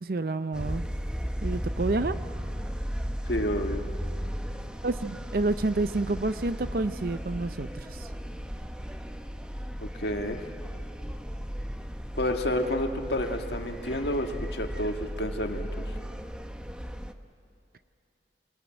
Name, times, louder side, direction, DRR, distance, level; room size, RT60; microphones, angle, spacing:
voice 1, 0.0-0.9 1.4-2.2 4.8-8.1, right 2 dB, 55° right, 11 dB, 0.6 m, -29 dB
sound 1, 0.5-17.1, equal, 5° right, 0.9 m, -35 dB
voice 2, 3.3-3.8 9.8-10.4 12.2-15.9, left 1 dB, 70° left, 4 dB, 1.7 m, -30 dB
26.5 x 20.5 x 8.9 m, 2.6 s
head